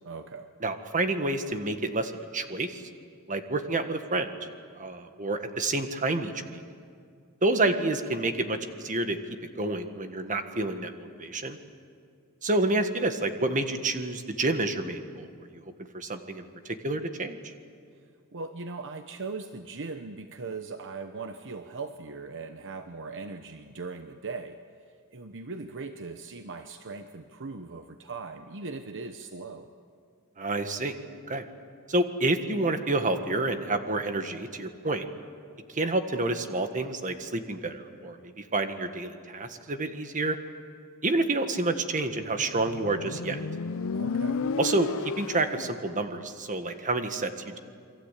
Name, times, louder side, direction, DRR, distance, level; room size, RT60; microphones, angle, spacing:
voice 1, 0.0-0.5 18.3-24.6 25.1-29.7 43.9-44.4, right 4 dB, 60° right, 7 dB, 1.0 m, -39 dB
voice 2, 0.6-2.8 3.3-4.4 4.7-6.6 7.4-9.2 9.6-11.6 12.4-15.3 15.5-15.6 15.9-16.4 16.8-17.4 30.4-30.9 31.3-31.4 31.9-35.0 35.7-40.4 41.0-43.4 44.6-47.6, right 2 dB, 35° right, 7 dB, 1.6 m, -29 dB
Motorcycle, 42.3-45.8, left 4 dB, 65° left, 0.6 m, -33 dB
28.5 x 23.5 x 8.4 m, 2.2 s
head